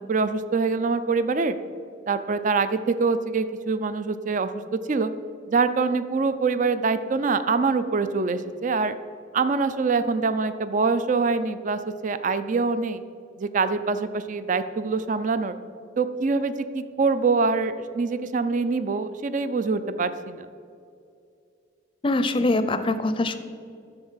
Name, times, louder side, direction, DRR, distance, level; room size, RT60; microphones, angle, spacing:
voice 1, 0.0-1.6 2.1-4.5 4.9-5.1 5.5-9.0 9.3-13.0 13.4-15.6 16.0-20.5, right 4 dB, 40° right, 12 dB, 0.4 m, -24 dB
voice 2, 22.0-23.4, left 2 dB, 25° left, 10 dB, 0.5 m, -23 dB
11.0 x 6.9 x 5.6 m, 2.5 s
head